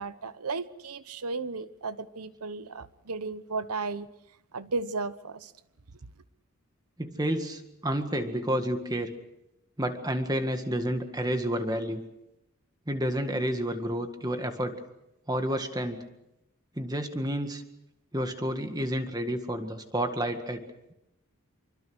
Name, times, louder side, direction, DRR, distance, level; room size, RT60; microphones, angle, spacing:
voice 1, 0.0-4.1 4.5-5.5, right 3 dB, 90° right, 1.1 m, -34 dB
voice 2, 7.0-9.1 9.8-12.0 12.9-14.7 15.3-16.0 16.8-17.6 18.1-20.6, equal, 15° right, 1.8 m, -30 dB
26.0 x 24.0 x 6.4 m
head